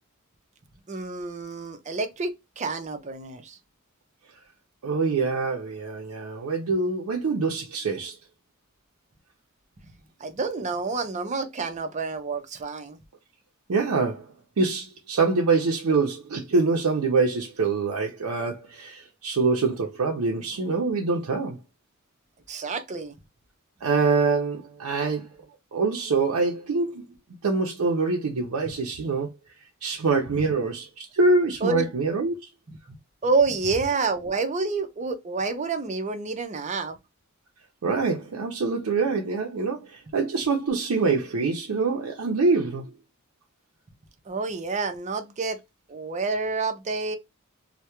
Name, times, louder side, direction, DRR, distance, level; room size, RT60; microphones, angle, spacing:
voice 1, 0.9-3.6 10.2-13.0 22.5-23.1 28.7-28.8 30.4-30.5 31.6-31.9 32.7-37.0 44.3-45.6 45.9-47.2, right 4 dB, 35° right, 0.5 m, -28 dB
voice 2, 4.8-8.2 13.7-21.6 23.8-25.3 25.7-27.1 27.4-29.3 29.8-32.4 37.8-42.9, right 4 dB, 85° right, 0.5 m, -25 dB
2.2 x 2.1 x 2.8 m
head